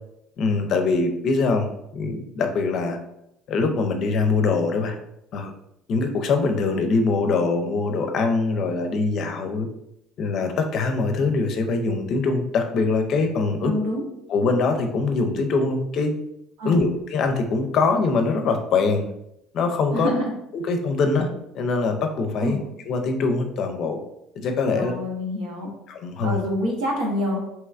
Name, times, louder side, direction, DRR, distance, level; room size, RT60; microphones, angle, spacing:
voice 1, 0.4-3.0 3.5-4.9 5.3-5.5 5.9-9.7 10.2-13.7 14.3-16.1 16.6-19.1 19.5-20.1 20.5-21.3 21.5-22.6 22.9-24.0 24.3-24.9 25.9-26.4, left 4 dB, 55° left, 5 dB, 0.5 m, -23 dB
voice 2, 13.6-14.0 16.6-16.8 19.9-20.2 22.4-22.6 24.7-25.7 26.2-27.4, equal, 75° right, -1 dB, 0.9 m, -26 dB
3.1 x 2.9 x 2.4 m, 0.80 s
hypercardioid pair, 75°, 0 cm